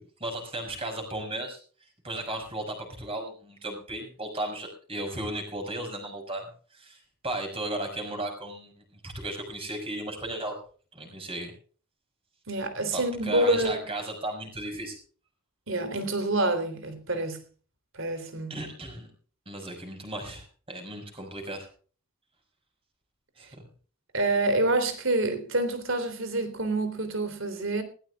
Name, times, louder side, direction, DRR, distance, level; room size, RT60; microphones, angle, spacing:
voice 1, 0.0-1.6 2.0-10.6 10.9-11.5 12.9-15.0 18.5-19.1 19.5-21.7 23.4-23.6, right 1 dB, 25° right, 5.8 m, -35 dB
voice 2, 12.5-13.8 15.7-17.4 18.0-18.5 24.1-27.8, right 2 dB, 65° right, 3.4 m, -27 dB
20.0 x 17.5 x 2.4 m
head